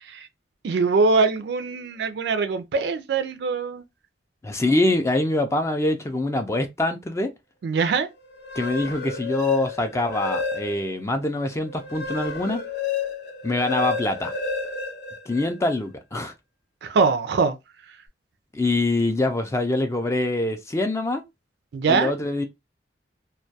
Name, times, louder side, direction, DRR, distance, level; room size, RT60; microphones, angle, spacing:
voice 1, 0.6-3.8 7.6-8.1 16.8-17.6 21.7-22.1, right 4 dB, 70° right, 0.4 m, -22 dB
voice 2, 4.4-7.3 8.5-12.6 13.4-14.3 15.3-16.3 18.5-21.2 21.9-22.4, left 2 dB, 15° left, 0.3 m, -24 dB
sound 1, 8.3-11.0 11.4-15.8, left 4 dB, 70° left, 0.6 m, -30 dB
2.2 x 2.2 x 2.6 m
head